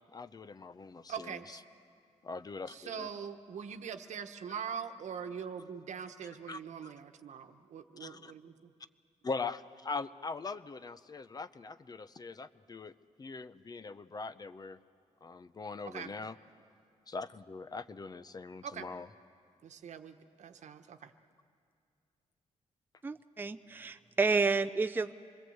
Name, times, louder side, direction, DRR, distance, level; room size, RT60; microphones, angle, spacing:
voice 1, 0.1-1.4 2.2-3.1 4.5-4.6 6.5-6.9 8.0-8.3 9.2-12.9 13.2-14.8 15.2-16.4 17.1-19.1, left 4 dB, 30° left, 13 dB, 0.6 m, -41 dB
voice 2, 1.1-1.6 2.7-8.7 15.9-16.1 18.6-18.9 19.6-21.1, right 7 dB, 70° right, 7 dB, 1.1 m, -43 dB
voice 3, 23.0-25.1, right 4 dB, 15° right, 10 dB, 0.5 m, -30 dB
26.5 x 21.0 x 7.9 m, 2.3 s
cardioid pair, 105°, 12 cm